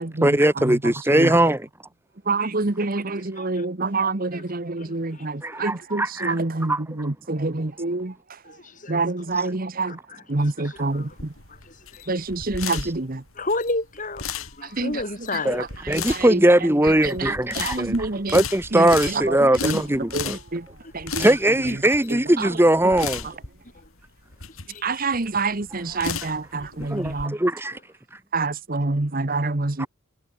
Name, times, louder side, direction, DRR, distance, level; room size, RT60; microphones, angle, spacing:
voice 1, 0.2-1.7 5.4-6.8 9.4-9.5 12.8-12.9 15.4-18.0 18.3-20.4 21.2-23.3 26.8-27.8 29.8-29.9, right 1 dB, 10° right, 1.3 m, -20 dB
voice 2, 1.1-1.5 2.3-8.1 8.9-10.0 10.3-11.1 12.1-13.2 14.7-14.9 15.9-16.4 17.0-18.4 18.7-19.3 19.6-19.8 20.1-20.6 20.9-21.2 22.4-22.5 24.8-27.3 28.3-29.9, right 3 dB, 40° right, 1.2 m, -26 dB
voice 3, 2.8-3.9 4.3-4.4 4.8-5.3 5.5-5.7 6.2-6.3 8.4-9.5 9.8-11.2 11.5-12.2 13.3-15.7 20.2-20.4 20.8-20.9 23.7-23.9 24.5-24.9 25.9-26.1 26.6-26.7 27.0-27.3 27.7-27.8, left 2 dB, 40° left, 5.7 m, -34 dB
sound 1, 10.8-27.2, left 6 dB, 85° left, 6.2 m, -35 dB
head